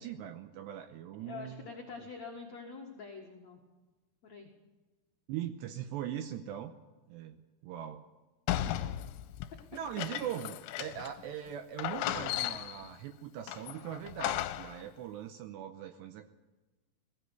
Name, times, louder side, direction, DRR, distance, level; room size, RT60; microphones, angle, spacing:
voice 1, 0.0-1.7 5.3-6.7 7.1-8.0 9.7-16.4, right 10 dB, 85° right, 7 dB, 2.5 m, -41 dB
voice 2, 1.2-3.6 4.2-4.5 8.6-8.8, left 4 dB, 55° left, 1 dB, 1.9 m, -45 dB
sound 1, 8.5-11.2 11.5-11.6 11.8-12.9 13.5-14.8, left 13 dB, 80° left, 3.3 m, -36 dB
20.5 x 16.0 x 8.1 m, 1.2 s
omnidirectional pair, 6.0 m